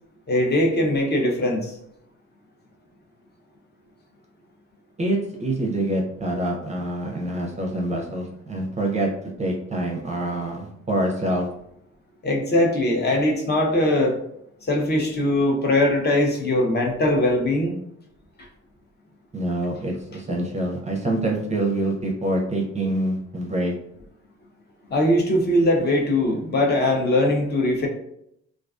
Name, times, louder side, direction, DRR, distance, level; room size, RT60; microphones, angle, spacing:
voice 1, 0.3-1.7 12.2-14.2 14.7-17.7 24.9-27.9, left 1 dB, 35° left, 1 dB, 0.6 m, -21 dB
voice 2, 5.0-9.1 9.4-11.5 19.3-23.7, right 1 dB, 25° right, 0 dB, 0.5 m, -26 dB
2.4 x 2.3 x 2.4 m, 0.74 s
cardioid pair, 90°, 30 cm